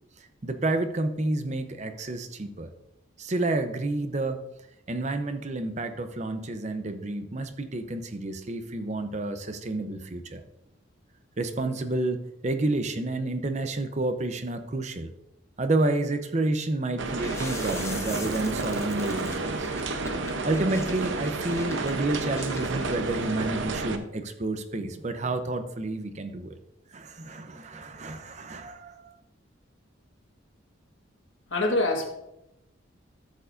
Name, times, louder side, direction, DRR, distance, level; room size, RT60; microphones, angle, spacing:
voice 1, 0.2-2.7 3.2-4.4 4.9-10.4 11.4-15.1 15.6-19.7 20.4-26.6 26.9-29.1, right 2 dB, 35° right, 9 dB, 0.6 m, -30 dB
sound 1, 17.0-24.0, right 3 dB, 75° right, 0.8 m, -31 dB
sound 2, 17.1-23.0, left 3 dB, 15° left, 0.8 m, -43 dB
voice 2, 31.5-32.1, left 2 dB, 75° left, 2 dB, 1.6 m, -25 dB
12.5 x 6.9 x 2.5 m, 0.85 s
head